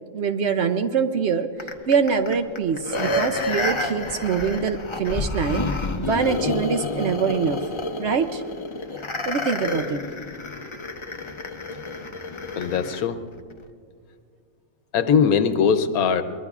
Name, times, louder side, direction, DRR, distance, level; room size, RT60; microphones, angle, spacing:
voice 1, 0.1-1.5 1.9-5.6 6.0-7.6 8.0-8.4 9.3-10.0, right 6 dB, 60° right, 8 dB, 0.8 m, -24 dB
sound 1, 1.6-13.0 13.5-13.6, left 2 dB, 30° left, 0.6 m, -29 dB
voice 2, 12.6-13.2 14.9-16.2, left 6 dB, 85° left, 10 dB, 1.2 m, -20 dB
23.5 x 20.5 x 2.4 m, 2.1 s
omnidirectional pair, 1.5 m